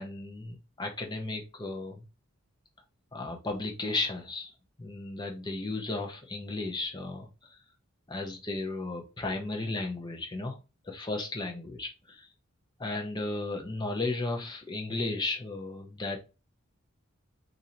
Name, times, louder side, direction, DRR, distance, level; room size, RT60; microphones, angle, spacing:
voice 1, 0.0-2.0 3.1-4.5 4.8-7.6 8.1-10.6 10.8-12.3 12.8-16.2, left 2 dB, 20° left, 2 dB, 0.6 m, -34 dB
2.7 x 2.5 x 4.2 m, 0.29 s
head